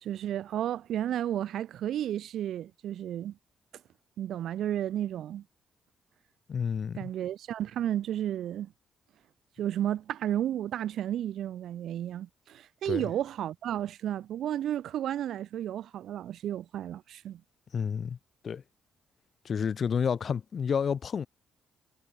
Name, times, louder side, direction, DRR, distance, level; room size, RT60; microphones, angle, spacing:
voice 1, 0.0-3.4 4.2-5.4 7.0-8.7 9.6-17.4, right 11 dB, 75° right, 1.3 m, -32 dB
voice 2, 6.5-7.1 12.9-13.1 17.7-18.2 18.4-18.6 19.4-21.3, left 7 dB, 50° left, 0.7 m, -30 dB
cardioid pair, 90°, 0 cm